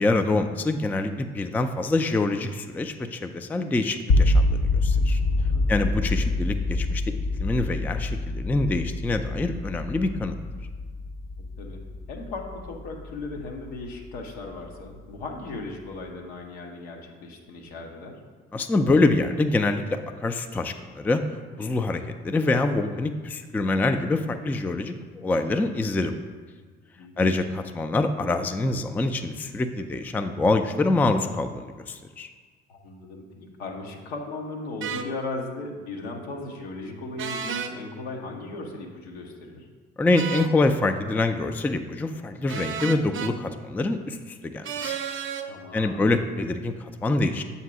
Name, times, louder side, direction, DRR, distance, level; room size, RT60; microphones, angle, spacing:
voice 1, 0.0-5.2 5.7-7.0 7.4-10.4 18.5-21.2 21.6-26.1 27.2-32.3 40.0-45.0 45.7-47.4, left 2 dB, 5° left, 8 dB, 0.3 m, -25 dB
sound 1, 4.1-14.1, left 2 dB, 50° left, 0.7 m, -25 dB
voice 2, 5.4-6.0 11.6-11.8 12.1-18.2 27.0-27.4 32.7-39.7 45.5-46.1, left 2 dB, 75° left, 1 dB, 0.9 m, -37 dB
sound 2, 34.8-35.1 37.2-37.7 40.1-40.5 42.5-43.3 44.6-45.5, right 7 dB, 40° right, 0.6 m, -31 dB
7.3 x 2.8 x 5.9 m, 1.5 s
figure-of-eight pair, 50°, 33 cm